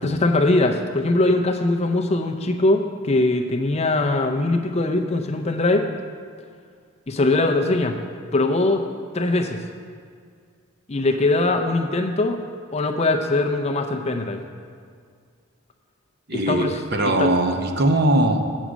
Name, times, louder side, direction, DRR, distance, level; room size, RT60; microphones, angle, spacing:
voice 1, 0.0-5.9 7.1-8.0 8.3-8.8 9.1-9.6 10.9-12.4 12.7-14.4 16.3-16.7 17.0-17.3, left 2 dB, 30° left, 4 dB, 0.4 m, -21 dB
voice 2, 16.3-18.6, right 1 dB, 45° right, 4 dB, 0.7 m, -21 dB
8.1 x 6.3 x 6.1 m, 2.1 s
head